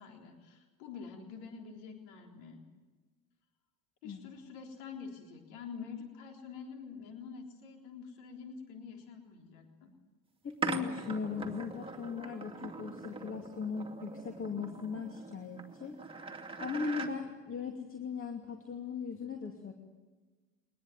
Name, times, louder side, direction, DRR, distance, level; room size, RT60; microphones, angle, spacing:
voice 1, 0.0-2.6 4.0-9.9, left 6 dB, 60° left, 2 dB, 3.9 m, -47 dB
voice 2, 10.4-16.0 16.6-19.7, left 5 dB, 30° left, 3 dB, 2.6 m, -38 dB
sound 1, 10.6-17.1, right 4 dB, 10° right, 2.6 m, -41 dB
22.5 x 20.5 x 9.4 m, 1.3 s
figure-of-eight pair, 70°, 45 cm